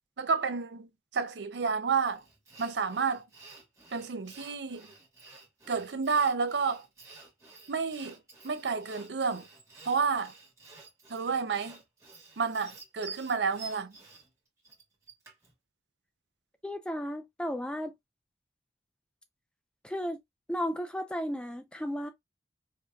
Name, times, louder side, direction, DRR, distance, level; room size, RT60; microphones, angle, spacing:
voice 1, 0.2-2.2 2.6-3.2 3.9-4.9 5.7-6.9 7.7-8.2 8.4-9.5 9.8-10.3 11.1-11.8 12.4-13.9, right 5 dB, 75° right, 0.5 m, -30 dB
Sawing, 1.9-15.5, right 4 dB, 15° right, 1.4 m, -51 dB
voice 2, 16.6-17.9 19.8-20.2 20.5-22.1, equal, 5° left, 0.4 m, -34 dB
4.9 x 2.7 x 2.3 m
head